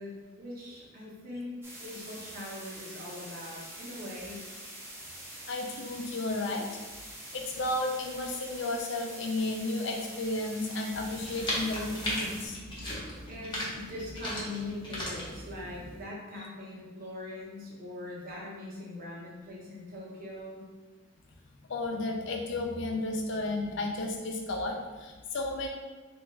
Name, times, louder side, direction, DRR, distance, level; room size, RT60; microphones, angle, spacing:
voice 1, 0.0-4.4 13.2-20.6, left 2 dB, 45° right, -5 dB, 0.9 m, -41 dB
sound 1, 1.6-12.5, right 1 dB, 10° right, 0.6 m, -45 dB
voice 2, 5.5-6.8 7.3-12.6 21.7-25.7, left 2 dB, 60° left, 2 dB, 0.5 m, -33 dB
sound 2, 10.9-16.0, left 1 dB, 25° left, 0.8 m, -37 dB
3.4 x 2.5 x 3.2 m, 1.3 s
head